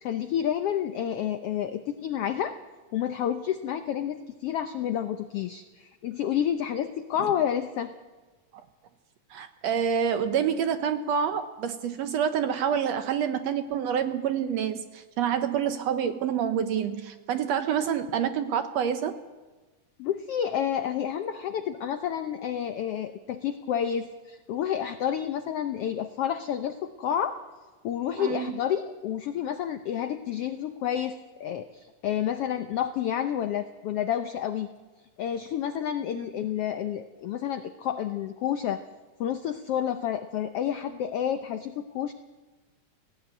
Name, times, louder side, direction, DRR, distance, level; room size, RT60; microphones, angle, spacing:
voice 1, 0.0-2.6 2.9-7.9 20.0-27.4 27.8-34.7 35.2-38.8 39.2-42.1, left 9 dB, 85° left, 9 dB, 1.3 m, -30 dB
voice 2, 9.3-19.2 28.2-28.6, right 8 dB, 70° right, 9 dB, 1.7 m, -27 dB
17.5 x 16.0 x 9.2 m, 1.3 s
omnidirectional pair, 3.7 m